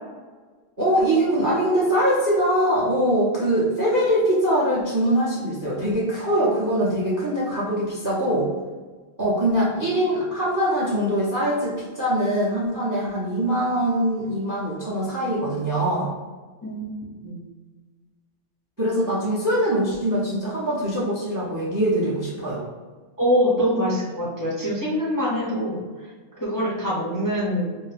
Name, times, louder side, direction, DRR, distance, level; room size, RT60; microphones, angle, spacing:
voice 1, 0.8-8.5 9.2-16.1 18.8-22.6, right 1 dB, 20° right, -6 dB, 0.5 m, -22 dB
voice 2, 16.6-17.0 17.2-17.4 23.2-26.1 26.4-27.7, equal, 20° left, -8 dB, 0.6 m, -24 dB
2.7 x 2.1 x 4.1 m, 1.4 s
omnidirectional pair, 1.3 m